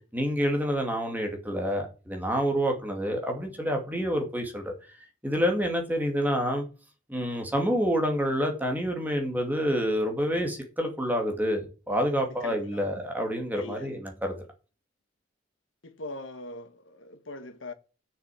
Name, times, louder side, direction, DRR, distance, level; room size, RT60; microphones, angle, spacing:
voice 1, 0.1-4.7 5.2-6.7 7.1-14.3, equal, 10° right, 2.3 m, -28 dB
voice 2, 12.4-12.9 13.5-13.9 15.8-17.7, left 2 dB, 85° left, 1.5 m, -41 dB
7.7 x 6.7 x 7.6 m
head